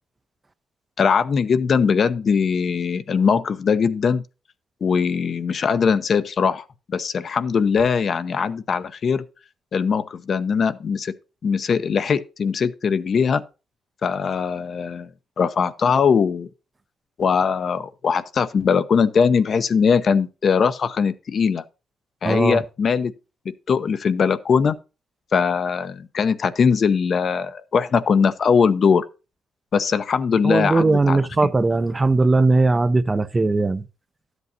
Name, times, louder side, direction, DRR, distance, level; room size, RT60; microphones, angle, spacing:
voice 1, 1.0-4.2 4.8-9.2 9.7-11.1 11.4-13.4 14.0-15.1 15.4-16.5 17.2-21.6 22.2-23.1 23.4-24.8 25.3-29.1 29.7-31.5, left 6 dB, 50° left, 0.7 m, -21 dB
voice 2, 22.2-22.6 30.4-33.8, right 3 dB, 25° right, 0.5 m, -19 dB
12.0 x 8.1 x 2.7 m
cardioid pair, 90°, 0 cm